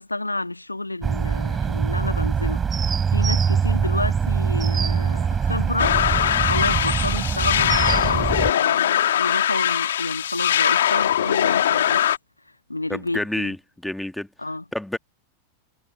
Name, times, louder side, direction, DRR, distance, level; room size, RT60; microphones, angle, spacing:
voice 1, 0.0-12.1 12.7-13.5 14.4-14.7, left 2 dB, 85° left, 1.8 m, -30 dB
sound 1, 1.0-8.5, right 6 dB, 20° right, 5.3 m, -23 dB
sound 2, 5.8-12.2, left 11 dB, 60° left, 2.9 m, -21 dB
voice 2, 12.9-14.3 14.7-15.0, left 1 dB, 5° left, 2.1 m, -29 dB
figure-of-eight pair, 90°, 0 cm